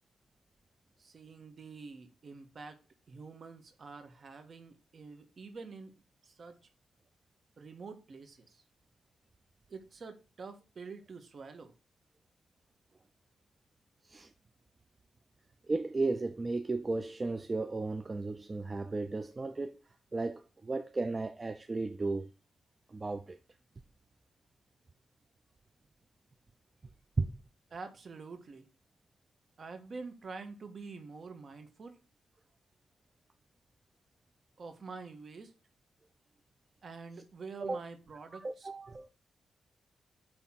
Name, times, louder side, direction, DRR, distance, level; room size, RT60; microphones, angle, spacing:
voice 1, 1.0-2.8 3.1-6.6 7.6-8.6 9.7-11.7 27.7-28.7 29.6-32.0 34.6-35.5 36.8-38.7, right 4 dB, 50° right, 1.5 m, -47 dB
voice 2, 15.7-19.7 20.1-22.3 22.9-23.4 27.2-27.3 37.6-37.8 38.3-39.1, right 3 dB, 30° right, 0.5 m, -34 dB
9.1 x 3.4 x 5.8 m
cardioid pair, 95°, 0 cm